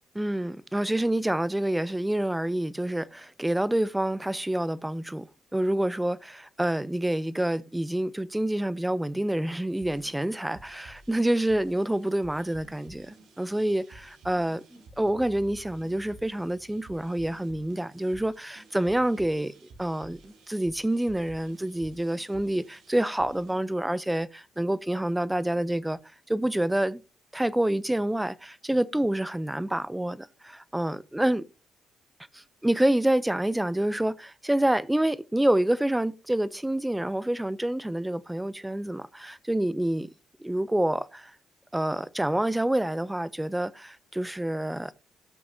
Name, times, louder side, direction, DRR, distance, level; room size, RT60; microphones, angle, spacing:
voice 1, 0.1-5.3 5.5-19.5 19.8-26.0 26.3-27.0 27.3-31.5 32.3-40.1 40.4-41.3 41.7-44.9, right 1 dB, 10° right, 0.5 m, -27 dB
sound 1, 9.7-23.6, right 2 dB, 75° right, 3.3 m, -52 dB
17.5 x 6.6 x 2.7 m
cardioid pair, 90°, 0 cm